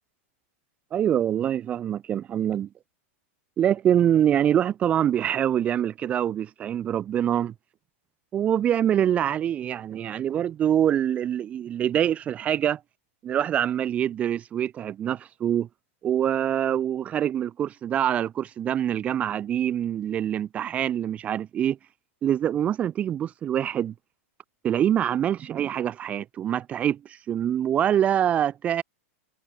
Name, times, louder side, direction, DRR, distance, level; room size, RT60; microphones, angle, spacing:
voice 1, 0.9-2.7 3.6-7.5 8.3-12.8 13.2-15.7 16.0-21.8 22.2-23.9 24.6-28.8, right 10 dB, 20° right, 0.4 m, -25 dB
supercardioid pair, 160°, 7 cm